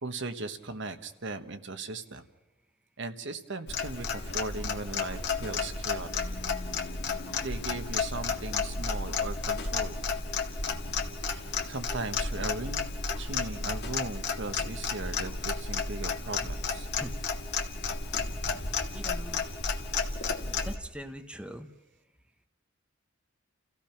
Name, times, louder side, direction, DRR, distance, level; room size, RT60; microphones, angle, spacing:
voice 1, 0.0-2.2 3.0-6.2 7.4-10.0 11.2-12.9 13.2-16.9, right 3 dB, 65° right, 8 dB, 1.3 m, -38 dB
Clock, 3.7-20.8, left 4 dB, 55° left, 1.7 m, -32 dB
voice 2, 18.9-19.4 20.6-21.7, equal, 5° right, 7 dB, 1.0 m, -41 dB
29.5 x 15.5 x 5.9 m, 1.0 s
head